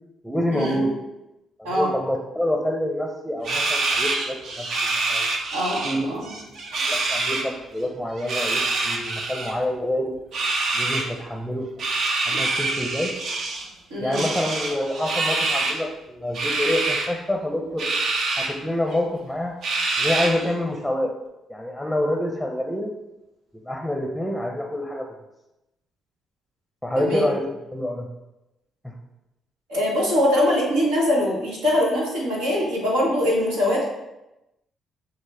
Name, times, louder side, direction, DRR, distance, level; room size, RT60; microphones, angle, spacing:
voice 1, 0.2-1.0 1.6-5.3 5.8-6.1 6.8-10.2 10.7-11.7 12.3-13.2 14.0-17.9 18.4-19.5 20.0-21.1 21.5-22.9 23.7-25.1 26.8-27.4 27.7-28.1 28.8-28.9, left 1 dB, ahead, 2 dB, 0.6 m, -27 dB
sound 1, 3.4-6.0 6.2-7.4 8.2-9.5 10.3-11.1 11.8-13.7 14.1-15.8 16.3-17.1 17.8-18.5 18.9-19.0 19.6-20.5, right 3 dB, 65° right, 0.6 m, -25 dB
voice 2, 5.5-6.3 12.3-12.4 13.9-14.2 26.9-27.3 29.7-33.8, left 1 dB, 90° right, -5 dB, 1.3 m, -22 dB
6.1 x 2.1 x 3.3 m, 0.94 s
hypercardioid pair, 50°, 0 cm